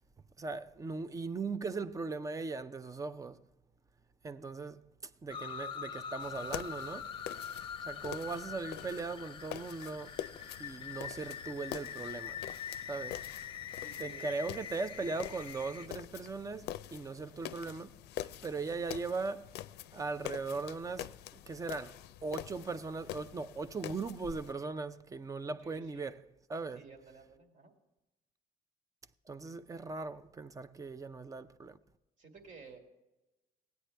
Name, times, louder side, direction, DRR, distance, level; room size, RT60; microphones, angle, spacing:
voice 1, 0.4-3.4 4.2-4.9 5.2-7.1 7.8-10.2 10.6-12.5 12.9-13.2 14.0-18.0 18.4-19.5 19.9-21.1 21.5-22.0 22.2-26.2 26.5-26.8 29.3-31.8, right 4 dB, 20° right, 0.5 m, -39 dB
sound 1, 5.3-15.9, left 8 dB, 30° left, 0.8 m, -44 dB
sound 2, 6.2-24.5, left 13 dB, 75° left, 0.4 m, -46 dB
voice 2, 8.8-9.4 13.7-14.4 25.6-26.1 26.7-27.7 32.2-32.8, right 4 dB, 45° right, 2.1 m, -54 dB
16.5 x 9.4 x 3.3 m
cardioid pair, 110°, 17 cm